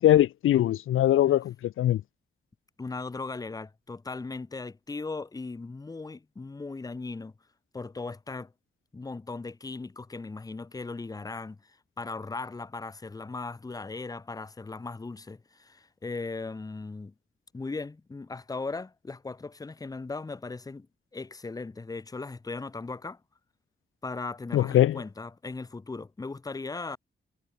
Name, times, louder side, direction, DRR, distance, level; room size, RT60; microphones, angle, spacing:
voice 1, 0.0-2.0 24.5-25.0, left 12 dB, 80° left, 0.4 m, -22 dB
voice 2, 2.8-7.3 7.7-8.5 8.9-17.1 17.5-20.9 21.1-23.2 24.0-27.0, left 3 dB, 15° left, 0.8 m, -38 dB
wide cardioid pair, 165°, 21 cm